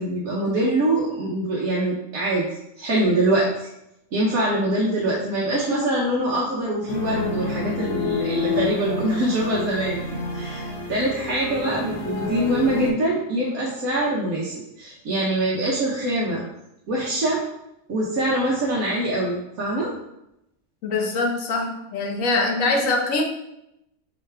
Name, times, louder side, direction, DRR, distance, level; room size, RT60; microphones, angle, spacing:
voice 1, 0.0-2.5 2.8-3.7 4.1-16.4 16.9-17.4 17.9-19.9, right 1 dB, 75° right, -5 dB, 1.3 m, -24 dB
sound 1, 6.9-12.9, left 4 dB, 45° left, 1.0 m, -28 dB
voice 2, 20.8-23.2, left 3 dB, 70° left, 2 dB, 1.2 m, -23 dB
4.7 x 3.4 x 3.3 m, 0.83 s
omnidirectional pair, 1.5 m